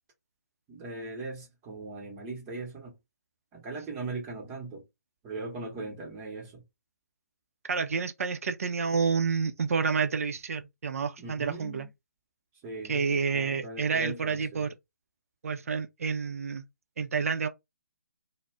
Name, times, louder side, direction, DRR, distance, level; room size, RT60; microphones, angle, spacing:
voice 1, 0.7-2.9 3.5-4.8 5.2-6.6 11.2-11.9 12.6-13.0 13.3-14.7, right 3 dB, 20° right, 0.9 m, -39 dB
voice 2, 7.7-11.9 12.9-14.7 15.4-16.6 17.0-17.5, right 5 dB, 55° right, 0.5 m, -29 dB
2.4 x 2.1 x 3.3 m
figure-of-eight pair, 140°, 9 cm